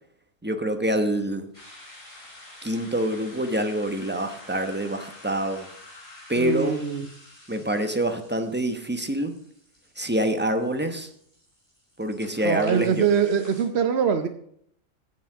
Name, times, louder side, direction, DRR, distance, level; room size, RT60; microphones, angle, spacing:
voice 1, 0.4-1.5 2.6-5.7 6.3-6.8 7.5-9.3 10.0-11.1 12.0-13.1, right 1 dB, 10° right, 6 dB, 0.9 m, -26 dB
sound 1, 1.5-13.6, left 2 dB, 40° left, 5.4 m, -48 dB
voice 2, 6.4-7.1 12.4-14.3, right 7 dB, 55° right, 7 dB, 1.0 m, -23 dB
9.6 x 7.6 x 6.2 m, 0.66 s
omnidirectional pair, 1.4 m